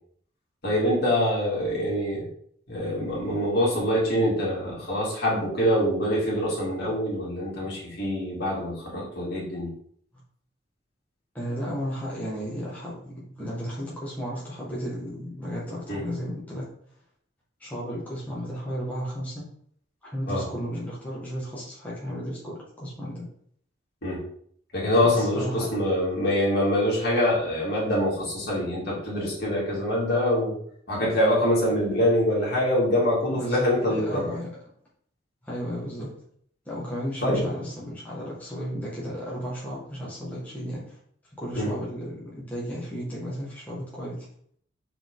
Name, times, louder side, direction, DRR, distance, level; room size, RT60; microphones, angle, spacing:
voice 1, 0.6-2.2 2.7-9.7 15.9-16.0 20.3-20.5 24.0-24.2 24.7-30.6 30.9-34.3 37.2-37.6 41.5-41.7, left 1 dB, 55° left, -6 dB, 2.9 m, -25 dB
voice 2, 11.3-16.7 17.6-19.4 20.0-23.3 25.0-25.7 33.4-34.5 35.4-36.1 36.7-40.8 41.4-44.3, equal, 10° left, -7 dB, 1.9 m, -34 dB
5.6 x 5.2 x 3.8 m, 0.63 s
head